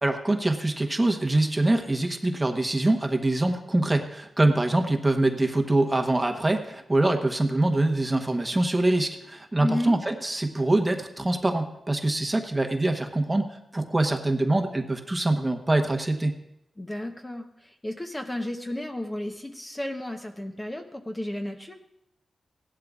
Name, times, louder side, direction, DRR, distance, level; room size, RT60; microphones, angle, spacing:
voice 1, 0.0-16.3, right 2 dB, 15° right, 5 dB, 1.0 m, -24 dB
voice 2, 9.6-10.0 16.8-21.8, left 1 dB, 15° left, 4 dB, 0.9 m, -33 dB
17.0 x 11.5 x 2.4 m, 0.83 s
wide cardioid pair, 105°, 0 cm